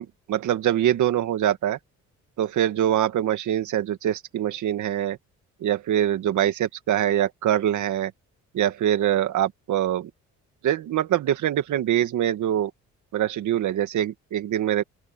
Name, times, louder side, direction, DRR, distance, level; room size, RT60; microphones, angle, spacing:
voice 1, 0.0-1.8 2.4-5.2 5.6-8.1 8.5-10.1 10.6-12.7 13.1-14.8, right 11 dB, 75° right, 2.0 m, -24 dB
open air
cardioid pair, 90°, 30 cm